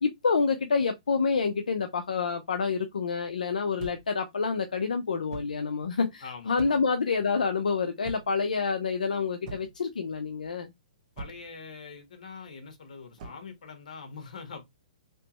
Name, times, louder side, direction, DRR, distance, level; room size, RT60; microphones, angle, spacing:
voice 1, 0.0-10.7, left 5 dB, 90° left, 0.6 m, -28 dB
sound 1, 3.8-4.2 5.3-5.6 6.6-7.0 8.0-8.4 9.4-9.9 11.2-11.5 13.2-13.5, right 3 dB, 35° right, 1.2 m, -42 dB
voice 2, 6.2-6.9 11.2-14.6, left 5 dB, 70° left, 1.4 m, -44 dB
3.3 x 3.0 x 3.0 m
hypercardioid pair, 150°, 4 cm